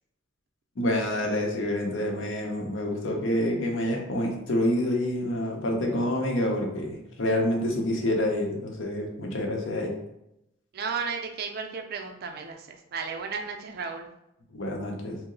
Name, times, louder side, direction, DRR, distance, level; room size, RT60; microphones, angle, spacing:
voice 1, 0.8-9.9 14.5-15.2, left 1 dB, 90° left, 1 dB, 0.7 m, -27 dB
voice 2, 10.7-14.1, right 5 dB, 55° right, 4 dB, 0.4 m, -34 dB
2.9 x 2.0 x 3.8 m, 0.84 s
head